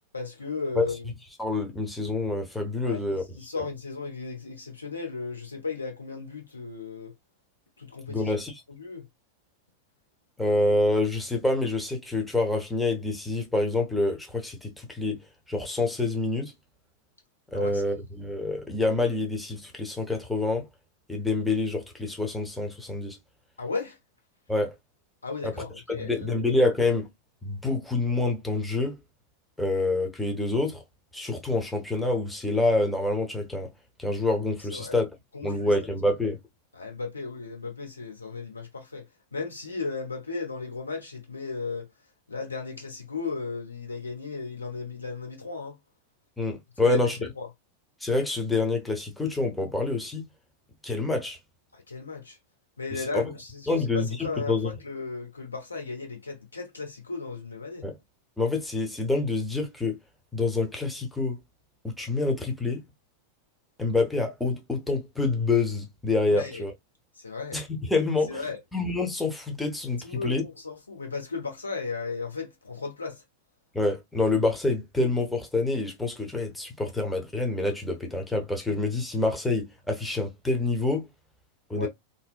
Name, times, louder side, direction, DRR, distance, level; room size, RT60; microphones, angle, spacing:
voice 1, 0.1-1.1 2.8-7.1 7.8-8.3 8.7-9.0 17.5-17.8 23.6-24.0 25.2-26.4 34.7-35.0 35.3-35.7 36.7-41.9 42.3-45.8 46.8-47.1 47.4-47.5 51.7-52.4 52.8-57.9 66.3-66.6 67.2-67.6 68.3-68.6 70.0-73.2 81.7-81.9, left 4 dB, 80° left, 0.7 m, -35 dB
voice 2, 1.4-3.4 8.1-8.5 10.4-16.5 17.5-20.7 21.1-23.2 24.5-24.7 25.4-25.5 25.9-27.1 27.4-29.0 29.6-30.8 31.1-33.7 34.0-35.1 35.4-36.4 46.4-47.2 48.0-50.3 50.8-51.4 53.0-53.2 53.7-54.7 57.8-58.0 58.4-60.0 60.3-61.4 61.8-62.8 63.8-66.7 67.5-68.4 68.7-70.4 73.7-81.1 81.7-81.9, left 2 dB, 5° left, 0.6 m, -27 dB
2.6 x 2.0 x 2.4 m
figure-of-eight pair, 90°, 0 cm